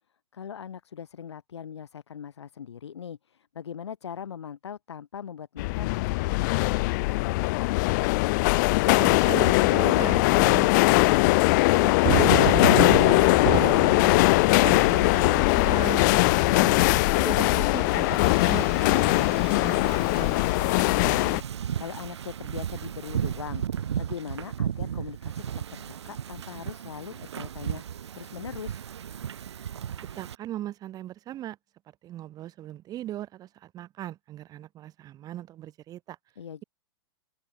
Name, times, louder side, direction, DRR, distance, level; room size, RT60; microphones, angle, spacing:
voice 1, 0.3-7.8 20.6-25.4 25.7-27.8 28.1-28.9 36.4-36.6, left 8 dB, 90° left, 2.7 m, -41 dB
sound 1, 5.6-21.4, left 25 dB, 45° left, 1.0 m, -21 dB
voice 2, 9.0-14.1 14.5-16.8 17.2-20.4 30.1-31.6 32.0-36.2, right 13 dB, 25° right, 7.4 m, -39 dB
Fireworks, 12.0-17.1, right 20 dB, 50° right, 2.9 m, -30 dB
Wind / Ocean, 14.6-30.3, right 9 dB, 85° right, 2.9 m, -36 dB
open air
hypercardioid pair, 140°, 14 cm